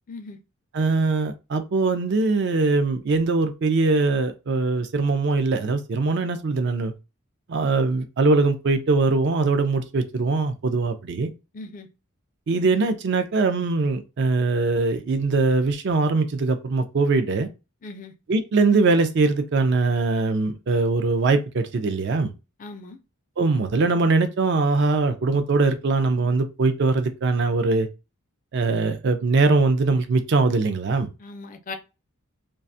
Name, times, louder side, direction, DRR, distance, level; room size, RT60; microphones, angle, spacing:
voice 1, 0.1-0.4 11.5-11.9 17.8-18.1 22.6-23.0 31.2-31.8, left 3 dB, 35° left, 0.4 m, -38 dB
voice 2, 0.7-6.9 7.5-11.3 12.5-17.5 18.3-22.3 23.4-27.9 28.5-31.1, right 3 dB, 50° right, 0.4 m, -22 dB
2.4 x 2.3 x 2.6 m
head